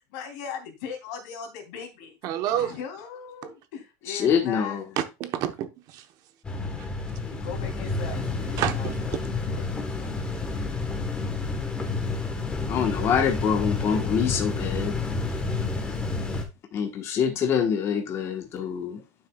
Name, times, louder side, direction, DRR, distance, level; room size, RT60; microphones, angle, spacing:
voice 1, 0.1-2.1 2.6-4.8 7.2-10.1 17.2-17.4, left 6 dB, 70° left, 3.1 m, -39 dB
voice 2, 2.2-2.8 3.4-3.5 5.0-6.0 8.6-9.0, right 11 dB, 45° right, 0.9 m, -29 dB
voice 3, 4.1-4.8 12.7-14.9 16.7-19.0, left 7 dB, 30° left, 1.2 m, -25 dB
sound 1, 6.4-16.4, left 3 dB, 10° left, 1.2 m, -30 dB
11.5 x 6.1 x 2.3 m
cardioid pair, 175°, 9 cm